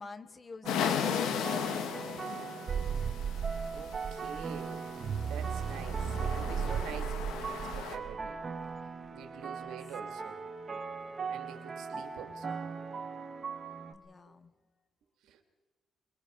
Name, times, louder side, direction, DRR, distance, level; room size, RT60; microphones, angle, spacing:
voice 1, 0.0-2.1 9.6-9.8 13.9-14.5, left 4 dB, 35° left, 11 dB, 1.6 m, -45 dB
sound 1, 0.6-13.9, right 5 dB, 35° right, 2.3 m, -41 dB
sound 2, 0.7-8.0, left 8 dB, 90° left, 2.1 m, -37 dB
sound 3, 2.7-8.8, right 7 dB, 55° right, 0.8 m, -36 dB
voice 2, 3.7-4.9 5.3-8.4 9.1-10.4 11.3-12.6 15.2-15.4, right 8 dB, 85° right, 5 dB, 2.7 m, -47 dB
24.5 x 23.5 x 4.9 m, 1.2 s
cardioid pair, 90°, 0 cm